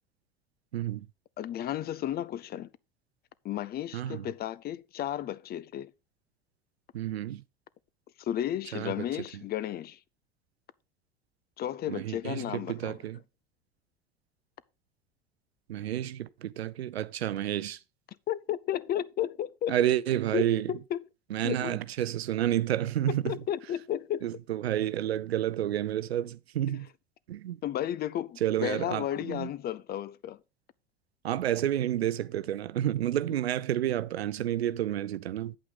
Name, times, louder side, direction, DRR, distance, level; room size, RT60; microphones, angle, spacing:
voice 1, 0.7-1.1 3.9-4.3 6.9-7.4 8.7-9.1 9.3-9.4 11.9-13.2 15.7-17.8 19.7-20.7 21.3-23.4 24.2-26.9 27.3-27.6 28.4-29.5 31.2-35.6, right 12 dB, 85° right, 0.6 m, -30 dB
voice 2, 1.4-2.7 3.4-5.9 8.2-10.0 11.6-13.0 18.3-19.8 20.3-21.0 21.4-21.8 23.1-24.3 26.7-26.8 27.6-30.4, left 11 dB, 30° left, 0.5 m, -33 dB
8.6 x 8.5 x 3.7 m
hypercardioid pair, 80°, 31 cm